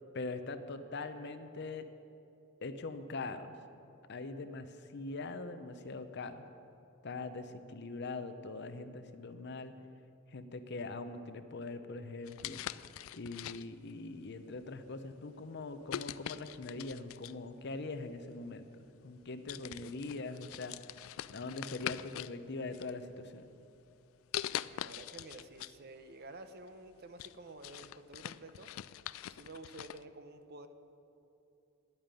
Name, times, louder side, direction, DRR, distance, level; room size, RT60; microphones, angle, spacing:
voice 1, 0.1-1.8 2.6-3.5 4.1-6.4 7.0-9.8 10.3-12.6 13.1-20.7 21.3-23.5, left 3 dB, 55° left, 10 dB, 0.7 m, -42 dB
sound 1, 12.3-13.9 14.6-14.9 15.9-17.5 18.5-18.6 19.1-19.2 19.5-22.4 22.7-23.4 24.3-25.8 26.1-26.2 26.7-30.0, left 12 dB, 80° left, 0.3 m, -43 dB
voice 2, 24.5-30.7, right 2 dB, 50° right, 9 dB, 0.8 m, -51 dB
11.0 x 8.8 x 9.1 m, 2.8 s
head